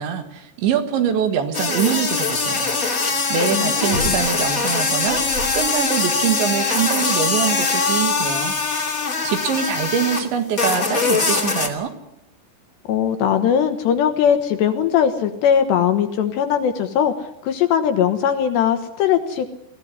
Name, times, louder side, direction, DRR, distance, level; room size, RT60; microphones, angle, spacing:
voice 1, 0.0-5.2 5.5-8.6 9.2-11.9, right 8 dB, 65° right, 8 dB, 3.7 m, -24 dB
sound 1, 1.5-10.3 10.6-11.7, left 4 dB, 30° left, 1.6 m, -22 dB
voice 2, 3.5-4.2 12.9-19.5, left 8 dB, 70° left, 7 dB, 2.9 m, -20 dB
sound 2, 3.9-4.6 5.0-5.8 6.2-6.3, right 1 dB, 45° right, 7.7 m, -30 dB
22.5 x 16.5 x 9.8 m, 0.82 s
omnidirectional pair, 6.0 m